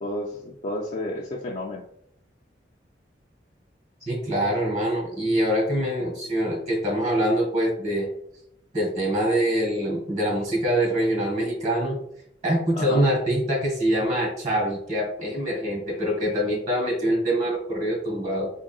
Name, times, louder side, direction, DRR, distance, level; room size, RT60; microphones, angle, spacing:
voice 1, 0.0-1.8 12.8-13.1, left 1 dB, 40° left, -1 dB, 0.3 m, -31 dB
voice 2, 4.0-8.1 8.7-12.0 12.4-18.5, right 1 dB, 40° right, -1 dB, 1.5 m, -24 dB
3.7 x 3.5 x 2.3 m, 0.75 s
head